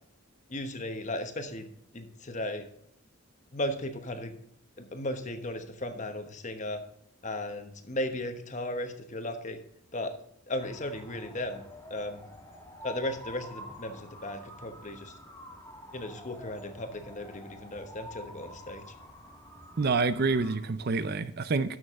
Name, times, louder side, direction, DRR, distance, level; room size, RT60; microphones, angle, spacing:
voice 1, 0.5-1.7 1.9-2.7 3.5-4.3 4.8-6.8 7.2-9.6 9.9-10.1 10.5-11.6 11.9-12.3 12.8-15.1 15.9-18.8, left 1 dB, 35° left, 7 dB, 1.1 m, -36 dB
sound 1, 10.6-20.6, equal, 10° left, 2.0 m, -48 dB
voice 2, 19.8-21.8, right 4 dB, 45° right, 14 dB, 0.5 m, -27 dB
12.5 x 6.4 x 3.7 m, 0.74 s
head